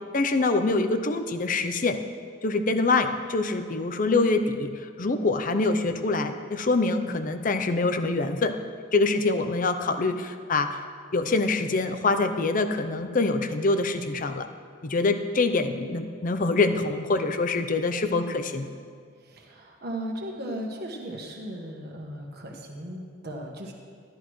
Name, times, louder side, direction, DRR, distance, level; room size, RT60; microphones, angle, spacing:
voice 1, 0.1-2.0 2.4-8.6 8.9-10.8 11.1-14.5 14.8-18.7, left 3 dB, 45° left, 8 dB, 0.6 m, -25 dB
voice 2, 19.2-23.7, right 1 dB, 55° right, 0 dB, 1.4 m, -36 dB
13.0 x 11.5 x 3.1 m, 2.1 s
head